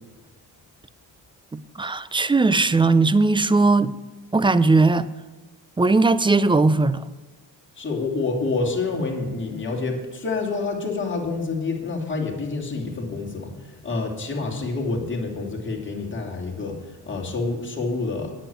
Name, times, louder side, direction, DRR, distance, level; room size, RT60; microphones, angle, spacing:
voice 1, 1.8-4.0 4.3-5.1 5.8-7.1, right 3 dB, 10° right, 0.4 m, -18 dB
voice 2, 7.8-18.3, left 3 dB, 25° left, 2.9 m, -28 dB
9.0 x 7.3 x 8.6 m
cardioid pair, 85°, 45 cm